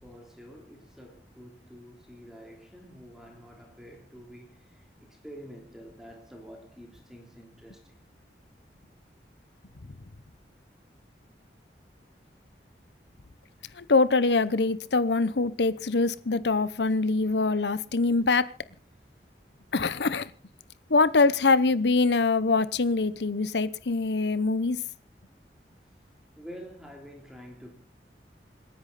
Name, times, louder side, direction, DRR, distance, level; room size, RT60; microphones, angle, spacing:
voice 1, 0.0-8.0 26.4-27.7, equal, 5° right, 3.3 m, -48 dB
voice 2, 13.8-18.5 19.7-20.3 20.9-24.8, left 3 dB, 80° left, 0.9 m, -24 dB
27.5 x 10.5 x 4.2 m
head